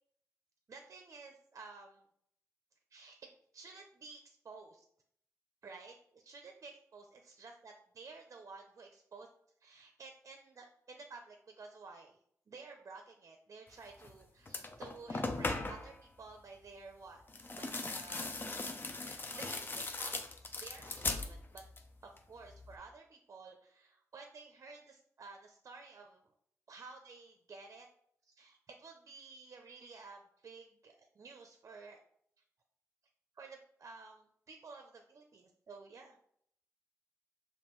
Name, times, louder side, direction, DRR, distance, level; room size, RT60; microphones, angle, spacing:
voice 1, 0.7-2.0 2.9-4.8 5.6-9.3 9.6-12.2 12.5-17.2 17.5-18.3 19.0-20.1 20.4-21.6 22.0-26.2 26.7-27.9 28.2-32.0 33.4-36.2, right 4 dB, 60° right, 4 dB, 0.5 m, -53 dB
sound 1, 14.0-14.1 14.5-15.9 17.3-21.9 22.2-22.8, left 3 dB, 35° left, 0.5 m, -39 dB
5.3 x 2.6 x 3.0 m, 0.68 s
cardioid pair, 75°, 6 cm